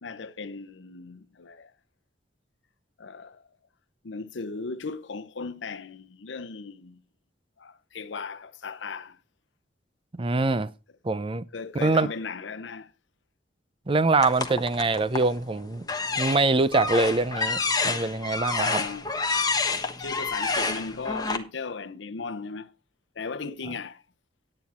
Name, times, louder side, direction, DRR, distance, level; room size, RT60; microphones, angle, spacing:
voice 1, 0.0-1.7 3.0-3.5 4.0-7.0 7.6-9.2 11.5-12.9 18.6-19.1 20.0-22.7 23.2-24.0, left 4 dB, 75° left, 0.7 m, -37 dB
voice 2, 10.2-10.7 11.0-11.5 11.8-12.1 13.9-15.9 16.2-18.8, right 3 dB, 30° right, 0.6 m, -24 dB
sound 1, 14.2-15.3 15.8-21.4, left 4 dB, 20° left, 1.2 m, -28 dB
9.9 x 9.5 x 4.3 m
head